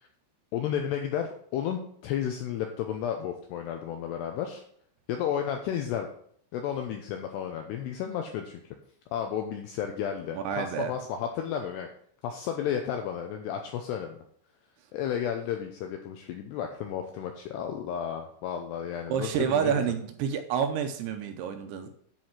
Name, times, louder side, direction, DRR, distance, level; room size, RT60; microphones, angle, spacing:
voice 1, 0.5-4.6 5.1-6.1 6.5-8.6 9.1-11.9 12.2-14.2 14.9-19.8, left 9 dB, 85° left, 4 dB, 2.4 m, -32 dB
voice 2, 10.3-10.9 19.1-21.9, right 8 dB, 80° right, 7 dB, 2.8 m, -29 dB
10.5 x 4.8 x 5.8 m, 0.63 s
omnidirectional pair, 5.6 m